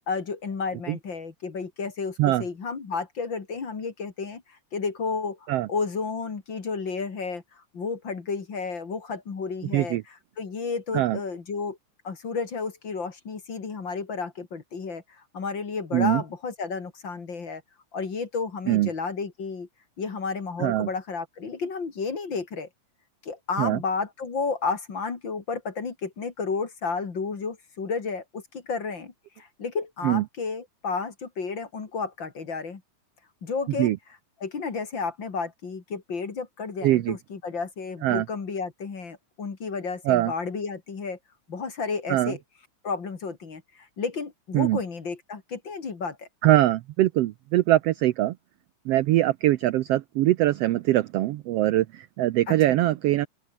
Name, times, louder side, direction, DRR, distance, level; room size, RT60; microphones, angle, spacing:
voice 1, 0.0-10.0 10.4-11.8 12.0-17.6 17.9-19.7 20.0-22.7 23.2-32.8 33.4-33.9 34.4-41.2 41.5-42.4 42.8-46.3 52.5-52.8, left 4 dB, 40° left, 3.0 m, -32 dB
voice 2, 36.8-37.2 38.0-38.2 40.1-40.3 42.1-42.3 44.5-44.8 46.4-48.4 48.8-53.3, right 15 dB, 85° right, 1.4 m, -22 dB
open air
omnidirectional pair, 3.6 m